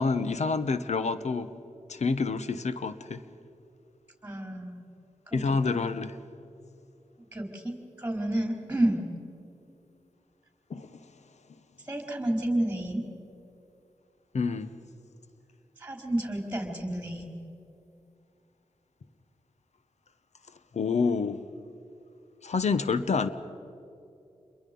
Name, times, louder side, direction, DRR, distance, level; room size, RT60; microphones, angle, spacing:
voice 1, 0.0-1.5 1.9-3.2 5.3-6.2 10.7-10.9 14.3-14.7 20.7-21.4 22.4-23.3, left 4 dB, 65° left, 1.2 m, -27 dB
voice 2, 4.2-4.8 5.3-5.8 7.3-9.0 11.8-13.1 15.8-17.4, right 1 dB, 10° right, 4.8 m, -30 dB
28.0 x 22.5 x 5.5 m
cardioid pair, 45°, 12 cm